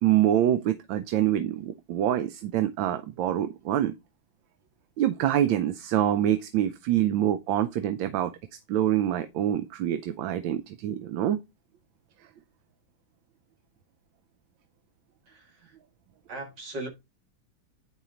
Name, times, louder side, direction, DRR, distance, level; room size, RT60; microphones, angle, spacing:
voice 1, 0.0-3.9 5.0-8.3 8.7-11.4, right 11 dB, 75° right, 1.3 m, -25 dB
voice 2, 15.3-15.8 16.3-16.9, right 2 dB, 60° right, 2.7 m, -38 dB
9.8 x 4.4 x 3.7 m
omnidirectional pair, 2.2 m